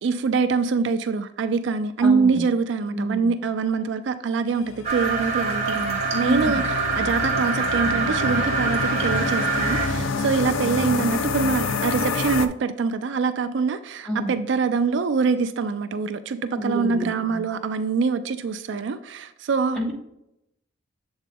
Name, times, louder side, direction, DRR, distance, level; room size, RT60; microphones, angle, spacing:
voice 1, 0.0-19.8, right 5 dB, 65° right, 10 dB, 0.3 m, -24 dB
voice 2, 2.0-2.4 2.9-3.3 6.1-6.6 14.1-14.4 16.5-17.4 19.7-19.9, equal, 5° left, -4 dB, 1.6 m, -29 dB
sound 1, 4.6-12.5, left 4 dB, 80° left, 0.5 m, -28 dB
sound 2, 4.8-9.9, right 4 dB, 35° right, 1.3 m, -25 dB
7.4 x 3.9 x 3.6 m, 0.83 s
head